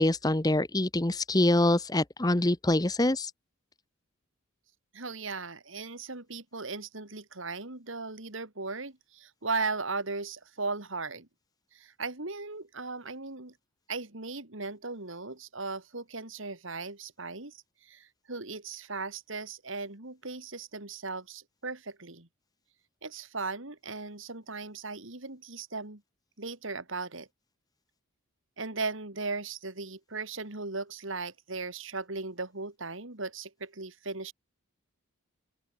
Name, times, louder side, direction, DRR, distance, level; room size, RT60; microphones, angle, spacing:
voice 1, 0.0-3.3, left 1 dB, 20° left, 1.0 m, -25 dB
voice 2, 4.9-11.3 11.7-13.5 13.9-22.3 23.0-26.0 26.4-27.3 28.6-34.3, right 3 dB, 65° right, 2.9 m, -37 dB
open air
head